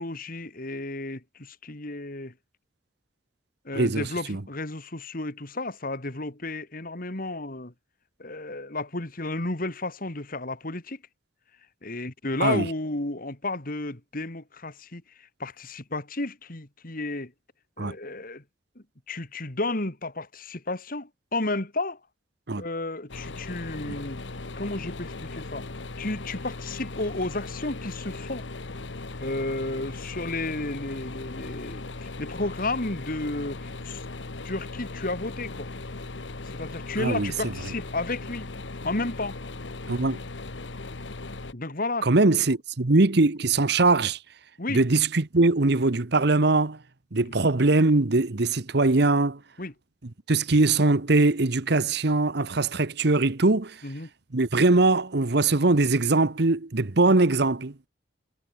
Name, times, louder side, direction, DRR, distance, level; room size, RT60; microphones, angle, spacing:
voice 1, 0.0-2.3 3.6-7.7 8.2-11.0 11.8-17.3 17.8-18.4 18.8-22.0 22.6-24.2 24.6-25.7 26.0-28.4 29.2-34.0 34.4-35.7 36.4-38.5 38.8-39.4 41.5-42.4 44.6-44.8 49.6-49.7 53.8-54.1, left 2 dB, 50° left, 2.4 m, -32 dB
voice 2, 3.7-4.0 4.3-4.4 12.4-12.6 17.8-17.9 22.5-22.6 23.9-24.0 37.0-37.3 39.9-40.2 42.0-44.2 44.7-46.8 47.1-49.4 50.3-53.8 54.3-57.7, right 3 dB, 60° right, 1.1 m, -21 dB
sound 1, 23.1-41.5, left 2 dB, 75° left, 1.3 m, -38 dB
head